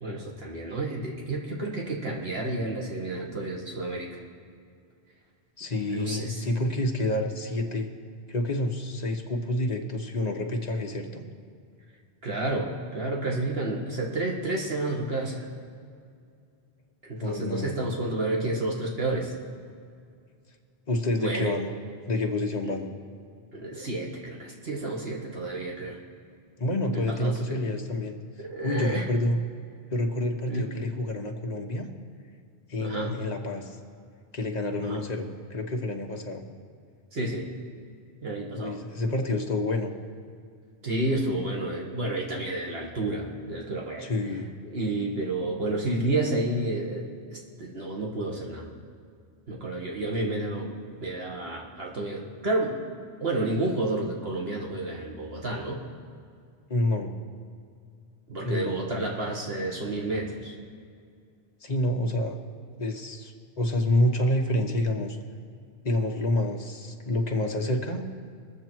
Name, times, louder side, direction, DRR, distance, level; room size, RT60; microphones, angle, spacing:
voice 1, 0.0-4.2 5.9-6.6 12.2-15.5 17.0-19.3 21.2-21.5 22.6-22.7 23.5-26.0 26.9-27.6 28.4-29.1 30.5-30.7 32.8-33.2 34.8-35.0 37.1-37.5 38.2-38.8 40.8-44.1 44.7-48.7 49.5-50.7 51.0-52.8 53.2-55.8 58.3-60.5, right 2 dB, 65° right, -1 dB, 1.8 m, -30 dB
voice 2, 5.6-7.9 8.3-11.2 17.2-17.7 20.9-21.7 22.1-22.9 26.6-28.2 28.6-29.4 29.9-31.9 32.7-33.8 34.3-36.4 38.5-39.9 44.0-44.5 56.7-57.1 58.4-59.1 61.6-62.4 62.8-65.2 65.8-68.0, left 1 dB, 40° left, 2 dB, 1.2 m, -28 dB
21.5 x 7.3 x 4.5 m, 2.3 s
omnidirectional pair, 1.1 m